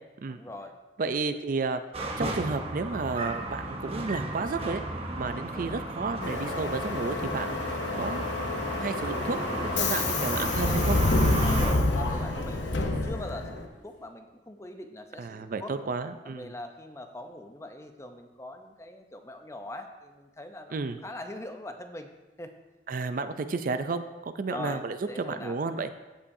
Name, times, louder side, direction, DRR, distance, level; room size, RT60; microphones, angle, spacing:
voice 1, 0.3-0.8 5.5-5.7 11.4-15.7 16.2-20.7 21.0-22.1 22.4-22.5 24.5-25.6, left 1 dB, 15° left, 6 dB, 0.6 m, -42 dB
voice 2, 1.0-1.8 2.2-4.8 5.2-8.2 8.8-11.0 15.2-16.5 20.7-21.0 22.9-25.9, right 4 dB, 50° right, 10 dB, 0.4 m, -32 dB
sound 1, 1.9-11.7, right 2 dB, 35° right, 0.9 m, -34 dB
Subway metro underground, 6.2-13.6, left 2 dB, 80° left, 0.8 m, -28 dB
Laughter, 7.8-14.1, right 1 dB, 45° left, 1.6 m, -46 dB
15.0 x 5.5 x 2.7 m, 1.1 s
head